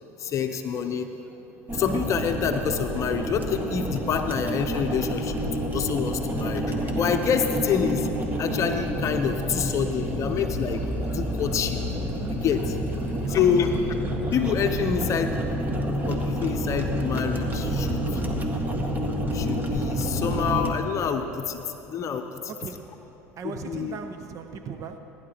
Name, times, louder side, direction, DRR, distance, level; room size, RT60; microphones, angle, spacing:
voice 1, 0.2-1.1 1.7-8.1 8.4-10.8 11.1-11.8 12.3-12.8 13.3-13.8 14.3-15.3 16.1-18.2 19.3-21.6 21.9-22.2 23.7-24.0, left 7 dB, 40° left, 5 dB, 0.8 m, -27 dB
sound 1, 1.7-20.7, equal, 25° right, 1.6 m, -28 dB
sound 2, 8.8-14.0, left 2 dB, 20° left, 2.6 m, -47 dB
voice 2, 13.1-13.6 22.3-22.9 23.4-25.0, right 6 dB, 45° right, 7 dB, 0.8 m, -38 dB
20.5 x 10.5 x 3.0 m, 3.0 s
hypercardioid pair, 85°, 8 cm